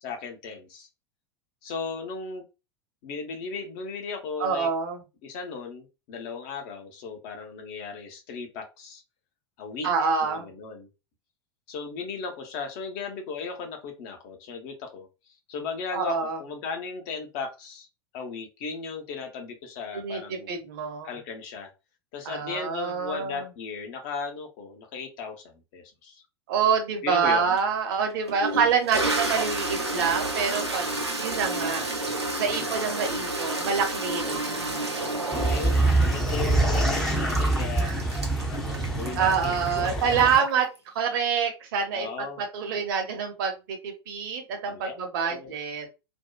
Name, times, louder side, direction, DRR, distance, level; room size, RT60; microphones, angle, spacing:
voice 1, 0.0-0.9 1.6-2.4 3.0-4.7 5.2-9.0 9.6-10.9 11.7-15.1 15.5-17.9 18.1-20.6 21.0-21.7 22.1-26.2 27.0-27.6 32.5-32.9 34.2-37.9 38.5-40.2 41.9-42.4 44.7-45.5, left 5 dB, 45° left, 4 dB, 0.8 m, -36 dB
voice 2, 4.4-5.0 9.8-10.5 15.9-16.4 19.9-21.1 22.2-23.5 26.5-31.9 32.4-34.4 37.8-38.0 39.1-40.7 40.9-45.8, right 6 dB, 55° right, 4 dB, 0.8 m, -26 dB
Toilet flush, 27.6-27.7 28.3-40.8, right 2 dB, 90° right, 0.6 m, -31 dB
sound 1, 35.3-40.4, right 2 dB, ahead, 0.5 m, -25 dB
2.6 x 2.2 x 2.2 m, 0.28 s
figure-of-eight pair, 85°, 14 cm